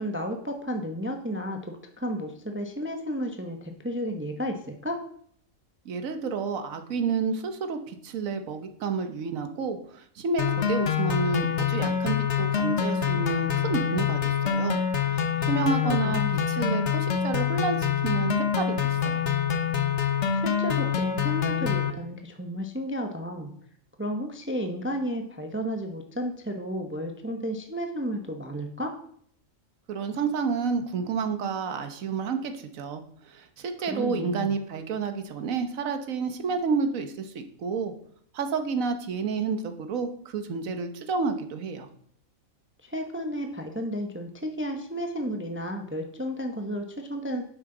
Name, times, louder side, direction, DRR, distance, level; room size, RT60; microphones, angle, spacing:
voice 1, 0.0-5.0 15.4-16.4 20.3-23.5 24.0-28.9 33.9-34.6 42.8-47.4, equal, 10° right, 5 dB, 0.7 m, -32 dB
voice 2, 5.8-14.8 15.1-16.2 16.5-19.3 29.9-37.9 38.3-41.9, right 5 dB, 75° right, 7 dB, 1.4 m, -30 dB
sound 1, 10.4-21.9, left 8 dB, 60° left, 1.2 m, -26 dB
10.0 x 8.0 x 3.8 m, 0.62 s
omnidirectional pair, 1.4 m